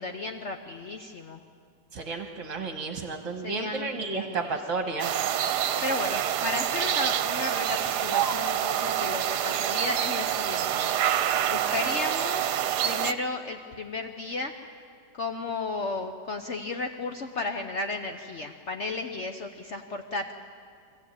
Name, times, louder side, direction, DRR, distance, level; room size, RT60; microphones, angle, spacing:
voice 1, 0.0-1.4 3.4-4.6 5.8-10.9 11.5-14.5 15.1-20.3, left 3 dB, 50° left, 5 dB, 1.1 m, -34 dB
voice 2, 1.9-5.1, right 4 dB, 50° right, 4 dB, 1.6 m, -32 dB
sound 1, 5.0-13.1, right 10 dB, 80° right, 1.3 m, -27 dB
24.5 x 15.5 x 8.9 m, 2.2 s
omnidirectional pair, 1.8 m